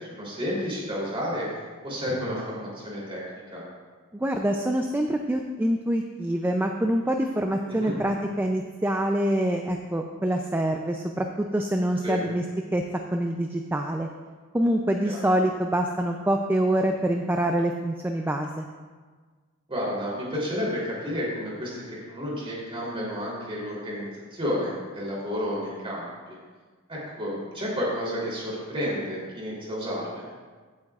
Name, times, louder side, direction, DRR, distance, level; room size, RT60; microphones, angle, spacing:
voice 1, 0.1-1.5 1.8-3.2 3.5-3.6 7.7-7.9 12.0-12.2 15.0-15.2 19.7-26.4 26.9-30.2, equal, 25° right, -5 dB, 3.3 m, -31 dB
voice 2, 4.1-12.4 12.7-12.8 13.1-14.1 14.5-18.6, right 1 dB, 10° right, 3 dB, 0.4 m, -25 dB
15.5 x 8.7 x 2.4 m, 1.5 s
head